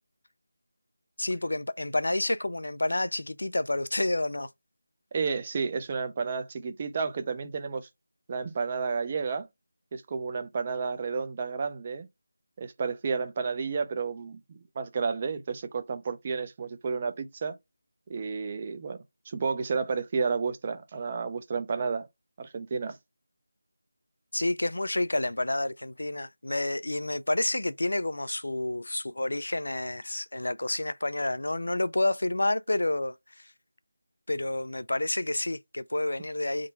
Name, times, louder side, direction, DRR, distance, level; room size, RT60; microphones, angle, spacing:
voice 1, 1.2-4.5 24.3-33.1 34.3-36.7, left 1 dB, 75° left, 0.4 m, -29 dB
voice 2, 5.1-7.9 8.3-9.5 9.9-12.1 12.6-17.6 18.1-19.0 19.3-22.1 22.4-23.0, right 5 dB, 25° right, 0.5 m, -31 dB
3.7 x 2.2 x 4.0 m
figure-of-eight pair, 170°, 0 cm